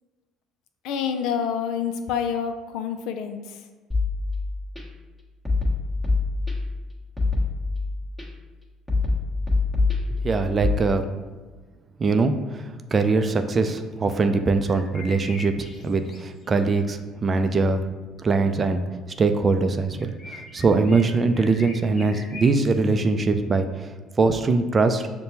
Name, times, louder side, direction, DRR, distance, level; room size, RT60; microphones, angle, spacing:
voice 1, 0.8-3.6, left 7 dB, 70° left, 7 dB, 0.4 m, -27 dB
sound 1, 3.9-4.8 5.5-6.8 7.2-8.2 8.9-10.8, left 3 dB, 10° left, 1.2 m, -25 dB
voice 2, 10.2-11.1 12.0-15.5 15.8-17.8 18.2-23.9 24.2-25.1, right 3 dB, 35° right, 7 dB, 0.4 m, -22 dB
sound 2, 14.6-16.5 20.0-22.9, left 3 dB, 45° left, 0.8 m, -42 dB
6.5 x 2.2 x 2.8 m, 1.3 s
hypercardioid pair, 60°, 0 cm